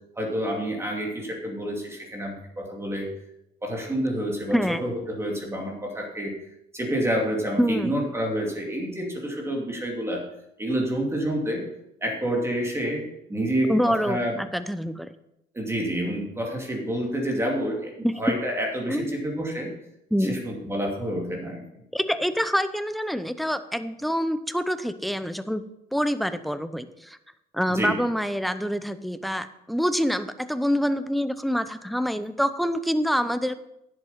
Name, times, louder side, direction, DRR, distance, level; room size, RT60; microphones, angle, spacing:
voice 1, 0.2-3.1 3.6-6.3 6.7-10.2 10.6-11.6 12.0-13.0 13.3-14.4 15.5-17.9 18.2-19.7 20.2-21.6 27.7-27.9, equal, 15° right, -1 dB, 2.6 m, -28 dB
voice 2, 4.5-4.8 7.6-7.9 13.7-15.1 18.0-18.4 18.9-19.2 20.1-20.4 21.9-25.6 25.9-27.2 27.5-33.5, equal, ahead, 11 dB, 0.7 m, -26 dB
10.5 x 7.7 x 5.6 m, 0.84 s
cardioid pair, 110°, 17 cm